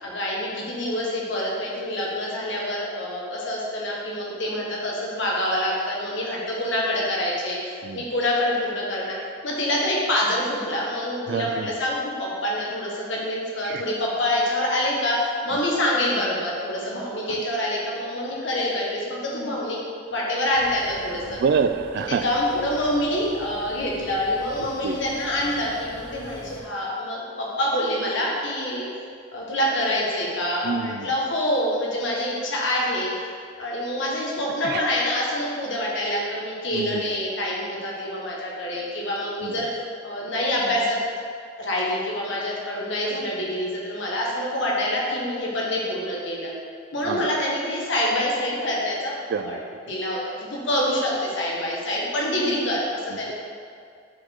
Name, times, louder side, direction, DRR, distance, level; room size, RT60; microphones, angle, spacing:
voice 1, 0.0-9.2 9.4-19.8 20.1-21.4 22.1-28.9 29.3-33.1 33.6-41.0 41.6-46.5 46.9-49.1 49.4-49.6 49.8-53.3, left 1 dB, 70° left, -4 dB, 1.4 m, -26 dB
voice 2, 11.3-11.7 13.6-13.8 17.3-17.4 21.3-22.2 24.6-25.0 30.6-31.1 34.6-34.8 36.7-37.0 39.4-39.5 47.0-47.3 49.3-49.6, right 6 dB, 55° right, 10 dB, 0.3 m, -27 dB
sound 1, 20.5-26.6, equal, 15° right, 1.1 m, -45 dB
6.2 x 4.5 x 4.4 m, 2.3 s
head